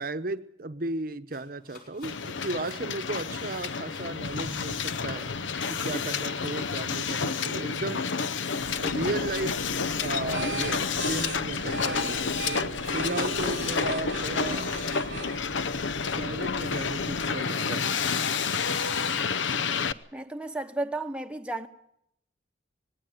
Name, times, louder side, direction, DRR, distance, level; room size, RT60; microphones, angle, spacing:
voice 1, 0.0-5.3 5.7-8.1 8.8-14.7 16.2-18.0, right 2 dB, 50° right, 0.9 m, -35 dB
sound 1, 1.3-15.9 16.1-16.2 16.6-16.9 17.2-18.0, left 4 dB, 50° left, 5.9 m, -52 dB
Hiss, 2.0-19.9, left 5 dB, 80° left, 0.8 m, -30 dB
sound 2, 8.6-17.4, right 5 dB, 75° right, 0.9 m, -40 dB
voice 2, 20.1-21.7, right 2 dB, 5° right, 0.9 m, -33 dB
20.0 x 17.0 x 9.1 m
head